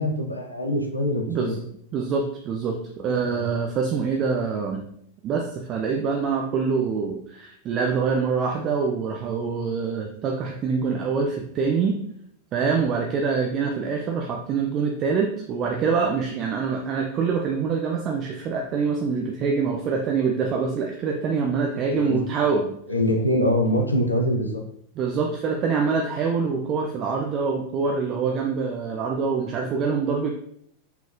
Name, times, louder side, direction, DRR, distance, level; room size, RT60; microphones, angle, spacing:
voice 1, 0.0-1.5 3.3-3.5 21.9-22.2 22.9-24.6, left 1 dB, 85° left, 2 dB, 0.7 m, -24 dB
voice 2, 1.3-1.6 1.9-4.8 5.2-12.0 12.5-22.7 25.0-30.3, right 5 dB, 35° right, 1 dB, 0.5 m, -25 dB
4.5 x 3.8 x 2.6 m, 0.69 s
figure-of-eight pair, 90°, 0 cm